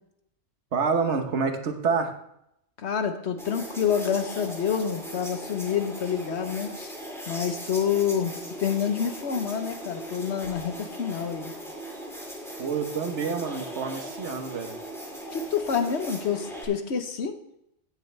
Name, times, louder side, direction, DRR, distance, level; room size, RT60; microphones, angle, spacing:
voice 1, 0.7-2.1 12.6-14.7, right 5 dB, 90° right, 6 dB, 1.4 m, -27 dB
voice 2, 2.8-6.9 7.3-8.3 8.6-11.5 15.3-17.3, left 7 dB, 75° left, 7 dB, 1.2 m, -28 dB
sound 1, 3.4-16.6, equal, ahead, 2.4 m, -39 dB
16.0 x 7.0 x 3.3 m, 0.77 s
omnidirectional pair, 1.1 m